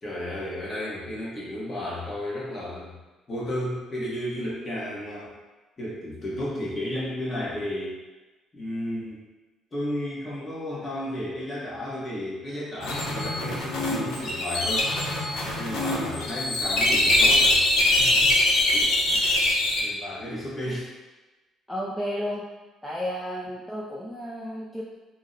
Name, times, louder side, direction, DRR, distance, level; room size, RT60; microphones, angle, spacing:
voice 1, 0.0-3.0 3.3-5.3 5.8-8.0 8.5-9.2 9.7-14.9 15.6-17.6 17.9-18.4 18.7-19.4 19.8-20.9, left 1 dB, 25° left, -7 dB, 1.0 m, -33 dB
sound 1, 12.8-19.8, left 1 dB, 80° left, 0.6 m, -23 dB
voice 2, 21.7-22.5 22.8-24.8, equal, ahead, -5 dB, 0.3 m, -32 dB
2.7 x 2.1 x 3.8 m, 1.2 s
cardioid pair, 140°, 0 cm